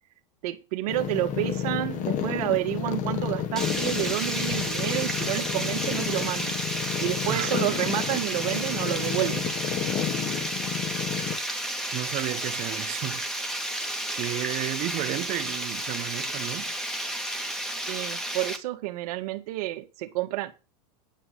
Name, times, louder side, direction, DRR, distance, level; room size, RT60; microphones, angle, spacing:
voice 1, 0.4-6.6 7.0-9.5 17.9-20.5, right 16 dB, 65° right, 2.0 m, -30 dB
sound 1, 0.9-11.4, left 9 dB, 35° left, 1.9 m, -31 dB
Water, 3.6-18.6, right 1 dB, ahead, 1.8 m, -32 dB
voice 2, 11.9-13.2 14.1-16.7, right 17 dB, 40° right, 1.0 m, -32 dB
10.0 x 5.9 x 7.8 m
supercardioid pair, 130°, 21 cm